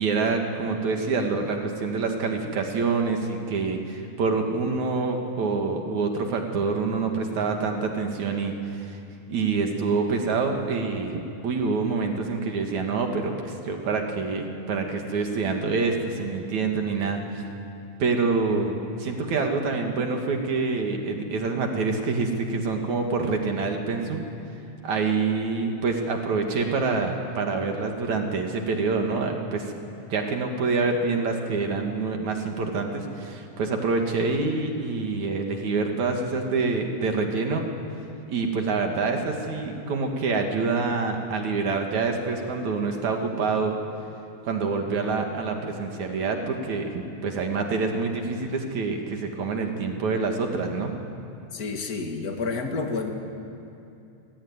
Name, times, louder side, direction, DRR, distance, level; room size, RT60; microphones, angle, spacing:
voice 1, 0.0-9.0 9.3-17.4 18.0-24.3 24.8-29.7 30.1-37.7 38.3-43.8 44.5-51.0, right 4 dB, 60° right, 3 dB, 3.5 m, -26 dB
voice 2, 51.5-53.1, left 4 dB, 30° left, 3 dB, 2.4 m, -29 dB
29.0 x 19.5 x 9.8 m, 2.7 s
omnidirectional pair, 3.8 m